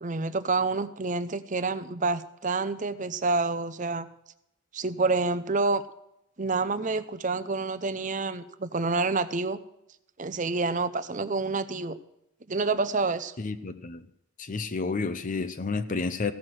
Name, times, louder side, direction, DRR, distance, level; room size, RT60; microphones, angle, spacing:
voice 1, 0.0-4.1 4.7-5.8 6.4-9.6 10.2-12.0 12.5-13.3, right 3 dB, 35° right, 0.6 m, -28 dB
voice 2, 13.4-14.0 14.4-16.3, left 4 dB, 35° left, 0.6 m, -30 dB
15.5 x 6.4 x 7.6 m
head